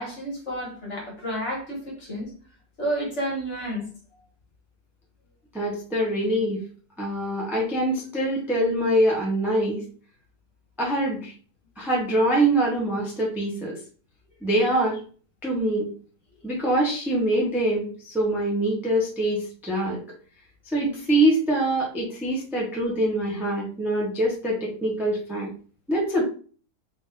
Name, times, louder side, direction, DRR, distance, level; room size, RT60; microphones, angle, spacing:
voice 1, 0.0-2.3 2.8-3.9, equal, 45° left, -3 dB, 1.9 m, -30 dB
voice 2, 5.5-6.6 7.0-9.8 10.8-11.3 11.8-13.8 14.4-15.0 15.4-15.9 16.4-20.0 20.7-25.5 25.9-26.2, right 1 dB, ahead, -3 dB, 0.8 m, -24 dB
4.0 x 2.7 x 3.7 m, 0.40 s
omnidirectional pair, 1.7 m